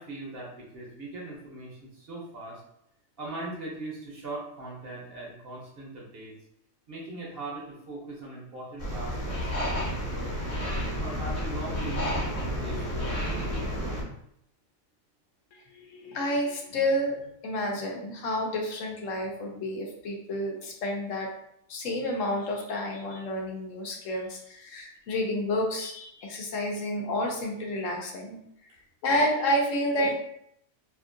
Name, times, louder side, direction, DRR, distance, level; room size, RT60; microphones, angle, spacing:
voice 1, 0.0-2.6 3.2-6.3 6.9-10.6 11.0-13.8, right 2 dB, 50° right, -3 dB, 0.9 m, -40 dB
sound 1, 8.8-14.0, equal, 45° left, 1.1 m, -31 dB
voice 2, 15.5-17.2 17.4-21.3 21.7-28.4 29.0-30.1, left 1 dB, 75° left, 0 dB, 1.0 m, -30 dB
2.8 x 2.5 x 2.5 m, 0.73 s
omnidirectional pair, 1.4 m